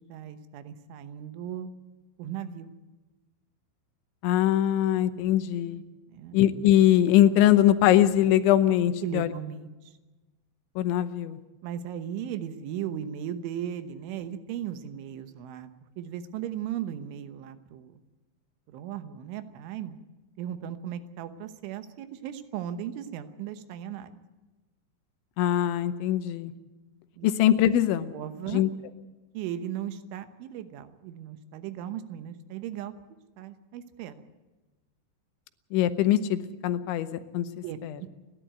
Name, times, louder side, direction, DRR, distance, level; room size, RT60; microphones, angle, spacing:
voice 1, 0.1-1.7 2.2-2.7 6.1-6.4 9.0-9.7 11.6-15.7 16.0-18.0 18.7-20.0 20.4-24.2 27.2-27.3 27.7-27.8 28.1-28.6 29.4-32.9 33.4-34.2 37.6-38.1, right 10 dB, 85° right, 10 dB, 3.6 m, -37 dB
voice 2, 4.2-5.8 6.3-9.3 10.8-11.4 25.4-26.5 27.2-28.1 28.5-28.7 35.7-37.1 37.3-37.5 37.8-38.0, left 12 dB, 80° left, 11 dB, 3.2 m, -22 dB
30.0 x 11.5 x 7.9 m, 1.2 s
omnidirectional pair, 5.4 m